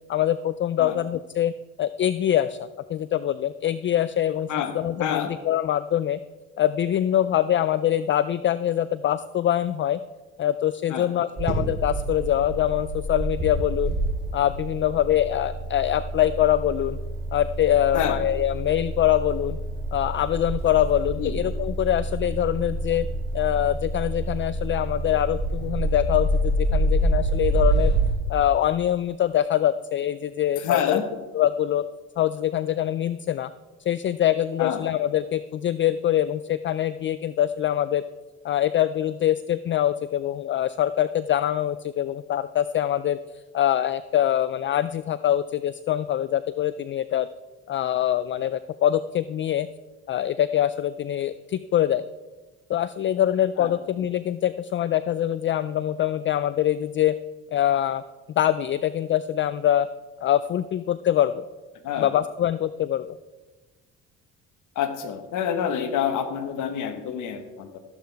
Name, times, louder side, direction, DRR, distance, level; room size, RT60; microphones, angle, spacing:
voice 1, 0.1-1.5 1.8-4.5 4.7-6.2 6.6-10.0 10.4-13.9 14.3-17.0 17.3-19.6 19.9-23.1 23.3-27.9 28.3-31.0 31.3-31.8 32.2-33.5 33.9-38.0 38.4-43.2 43.5-47.3 47.7-49.7 50.1-52.0 52.7-57.1 57.5-58.0 58.4-59.9 60.2-61.4 62.0-63.2, left 11 dB, 40° left, 14 dB, 0.4 m, -24 dB
voice 2, 5.0-5.3 10.9-11.1 17.9-18.2 21.2-21.3 30.6-31.0 34.6-34.8 53.6-53.7 61.8-62.1 64.7-67.8, left 9 dB, 75° left, 8 dB, 1.4 m, -27 dB
sound 1, 11.4-28.1, right 1 dB, 35° right, 3.7 m, -27 dB
14.0 x 11.5 x 3.5 m, 1.2 s
cardioid pair, 95°, 30 cm